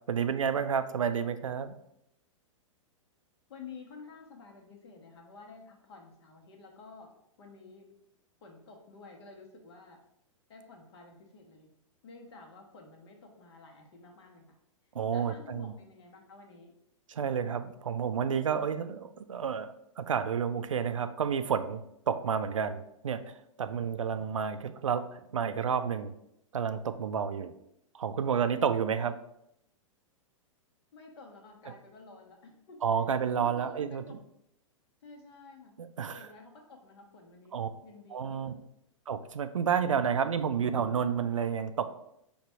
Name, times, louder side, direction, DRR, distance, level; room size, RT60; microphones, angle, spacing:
voice 1, 0.1-1.7 15.0-15.7 17.1-21.8 22.1-23.2 23.6-26.1 26.5-27.5 27.9-29.1 32.8-34.2 35.8-36.3 37.5-37.7 38.1-38.5 39.1-41.9, right 7 dB, 70° right, 10 dB, 0.4 m, -30 dB
voice 2, 3.5-7.1 7.4-7.9 8.4-10.0 10.5-11.7 12.0-14.4 15.1-16.7 30.9-33.0 33.4-34.2 35.0-35.7 36.1-37.6 37.8-38.6, left 4 dB, 50° left, 2 dB, 1.0 m, -51 dB
5.1 x 2.4 x 4.3 m, 0.79 s
figure-of-eight pair, 105°, 17 cm